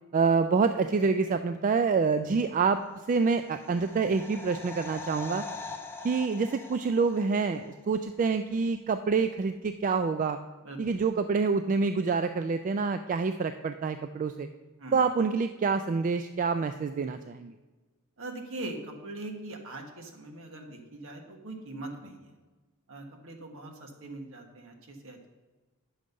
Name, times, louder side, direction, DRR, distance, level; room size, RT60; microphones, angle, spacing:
voice 1, 0.1-5.4 6.0-10.4 10.8-14.5 14.9-17.5, right 4 dB, 35° right, 9 dB, 0.3 m, -27 dB
sound 1, 2.9-7.7 8.0-8.1, left 4 dB, 10° left, 0.7 m, -43 dB
voice 2, 18.2-22.3 22.9-25.3, right 2 dB, 65° right, 3 dB, 1.4 m, -41 dB
9.6 x 6.4 x 5.3 m, 1.2 s
head